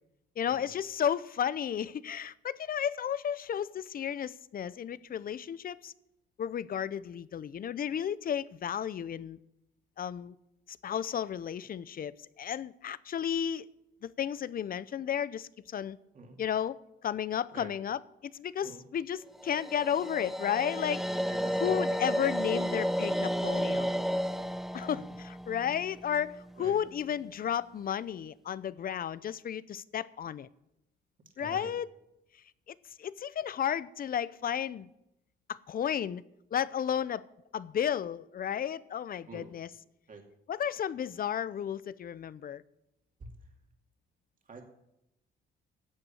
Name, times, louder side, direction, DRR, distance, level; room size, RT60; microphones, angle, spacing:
voice 1, 0.4-5.9 6.4-9.4 10.0-10.3 10.8-13.7 14.0-16.0 16.4-21.0 21.5-24.0 24.7-30.5 31.4-31.9 32.7-34.9 35.5-36.2 36.5-37.3 37.5-39.7 40.5-42.6, left 9 dB, 45° left, 0.6 m, -33 dB
sound 1, 19.4-26.5, equal, ahead, 0.7 m, -32 dB
voice 2, 21.3-21.7 26.6-26.7 31.4-31.7 39.3-39.5 40.1-40.2 43.2-43.3 44.5-44.6, right 3 dB, 40° right, 2.6 m, -46 dB
11.0 x 8.0 x 8.5 m
cardioid pair, 90°, 20 cm